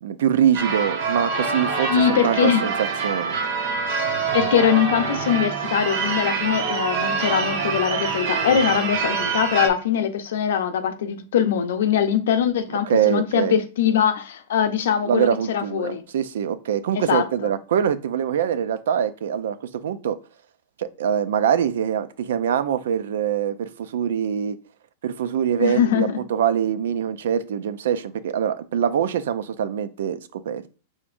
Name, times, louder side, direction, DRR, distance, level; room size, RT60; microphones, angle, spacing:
voice 1, 0.0-3.4 12.7-13.6 15.0-20.2 20.8-24.6 25.0-30.8, right 9 dB, 80° right, 0.4 m, -24 dB
Church bell / Car / Alarm, 0.5-9.7, right 5 dB, 60° right, 1.0 m, -25 dB
voice 2, 1.9-2.7 4.3-16.0 16.9-17.5 25.6-26.2, left 8 dB, 80° left, 0.7 m, -22 dB
5.1 x 3.5 x 2.5 m
supercardioid pair, 140°, 0 cm